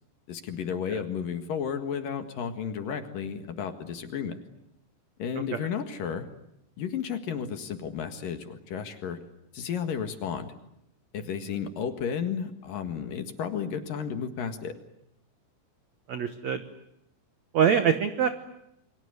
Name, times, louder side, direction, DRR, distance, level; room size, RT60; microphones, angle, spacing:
voice 1, 0.3-4.4 5.2-6.3 6.8-9.2 9.5-10.5 11.1-14.7, left 7 dB, 60° left, 7 dB, 3.0 m, -33 dB
voice 2, 16.1-16.6 17.5-18.3, right 8 dB, 80° right, 9 dB, 1.5 m, -23 dB
29.0 x 23.5 x 8.1 m, 0.81 s
omnidirectional pair, 5.2 m